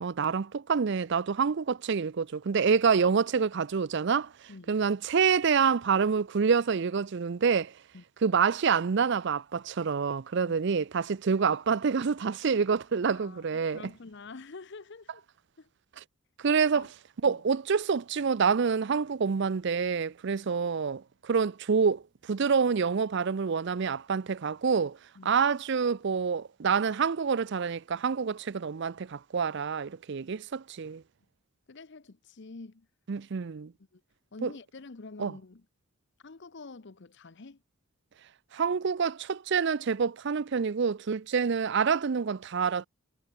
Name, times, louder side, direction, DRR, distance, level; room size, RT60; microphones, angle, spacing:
voice 1, 0.0-4.3 4.7-7.7 8.2-13.8 16.0-16.1 16.4-16.9 17.2-25.0 25.2-31.0 33.1-33.7 34.4-34.5 35.2-35.3 38.5-42.9, right 6 dB, 55° right, 0.5 m, -27 dB
voice 2, 10.4-10.8 13.1-15.2 15.6-15.7 16.6-16.9 17.2-17.4 25.2-25.3 31.7-32.9 33.9-34.0 34.3-35.7 36.2-37.6, left 3 dB, 55° left, 0.8 m, -47 dB
head